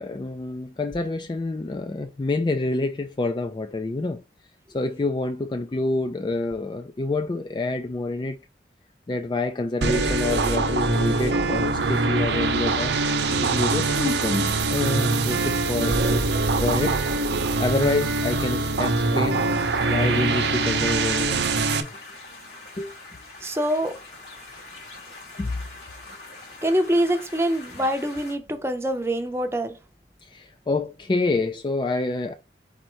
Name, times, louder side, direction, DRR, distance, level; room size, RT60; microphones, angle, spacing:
voice 1, 0.0-4.2 4.7-8.4 9.1-12.9 13.4-16.3 16.6-17.0 17.6-21.6 22.8-22.9 25.4-25.5 30.2-32.3, left 2 dB, 25° left, 0.3 m, -27 dB
sound 1, 9.8-21.8, right 3 dB, 75° right, 0.7 m, -23 dB
sound 2, 19.5-28.3, left 2 dB, 70° left, 2.6 m, -43 dB
voice 2, 23.4-24.0 26.6-29.8, equal, 15° right, 0.6 m, -24 dB
4.3 x 2.6 x 4.5 m
head